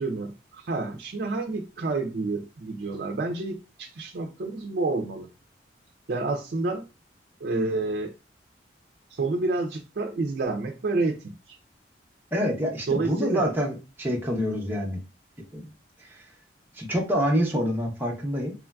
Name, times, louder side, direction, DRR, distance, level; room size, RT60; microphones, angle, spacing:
voice 1, 0.0-5.3 6.1-6.8 7.4-8.1 9.1-11.6 12.9-13.5, right 3 dB, 60° right, 0.4 m, -29 dB
voice 2, 12.3-15.0 15.5-15.7 16.1-16.2 16.8-18.5, equal, 10° right, 0.7 m, -27 dB
3.1 x 2.4 x 2.2 m
head